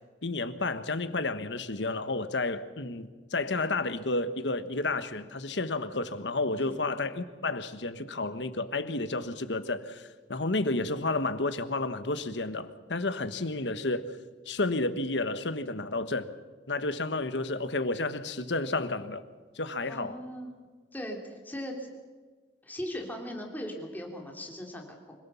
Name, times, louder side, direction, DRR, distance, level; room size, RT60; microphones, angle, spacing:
voice 1, 0.2-14.2 14.5-16.3 16.7-19.2 19.5-20.2, left 2 dB, 80° left, 11 dB, 1.4 m, -31 dB
voice 2, 19.9-20.5 20.9-21.9 22.6-25.2, equal, 10° left, 1 dB, 3.5 m, -39 dB
26.0 x 18.0 x 7.2 m, 1.4 s
head